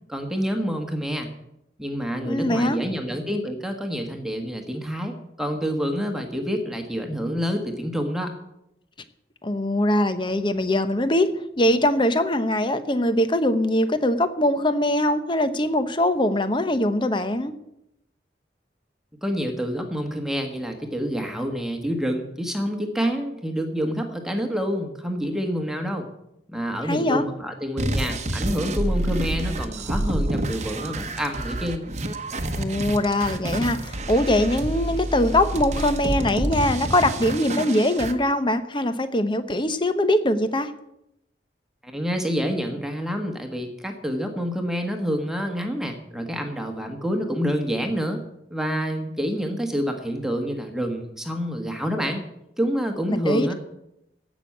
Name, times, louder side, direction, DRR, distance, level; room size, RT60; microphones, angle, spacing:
voice 1, 0.1-1.3 1.8-8.3 19.2-26.1 26.5-31.8 41.8-48.2 48.5-52.2 52.6-53.5, equal, 5° right, 3 dB, 1.4 m, -27 dB
voice 2, 2.2-2.8 9.4-11.3 11.6-17.5 26.9-27.2 32.6-40.7 53.1-53.5, left 1 dB, 25° left, 10 dB, 0.9 m, -22 dB
sound 1, 27.8-38.1, right 1 dB, 40° right, 1.1 m, -28 dB
15.5 x 6.2 x 8.6 m, 0.84 s
head